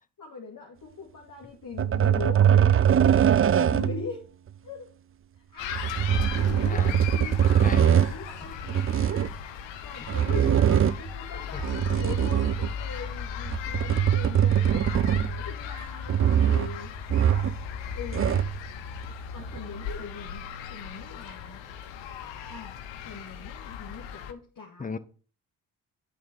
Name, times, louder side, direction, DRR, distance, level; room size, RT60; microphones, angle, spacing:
voice 1, 0.2-2.9 3.5-4.2 4.6-4.9 5.5-7.4 7.9-8.9 9.8-17.5 17.9-18.5 19.3-21.7 22.5-22.8 23.0-25.0, left 5 dB, 45° left, 2.2 m, -41 dB
sound 1, 1.8-4.1 5.7-8.1 8.7-9.3 10.1-11.1 11.6-12.8 13.4-15.5 16.1-16.8 17.1-17.6 17.9-18.6 19.5-19.6, right 9 dB, 30° right, 0.5 m, -22 dB
sound 2, 5.6-24.3, left 8 dB, 70° left, 1.0 m, -37 dB
voice 2, 6.7-7.0 7.5-8.0 11.5-11.6 24.8-25.0, left 4 dB, 20° left, 0.8 m, -35 dB
8.3 x 4.7 x 6.0 m
hypercardioid pair, 45°, 46 cm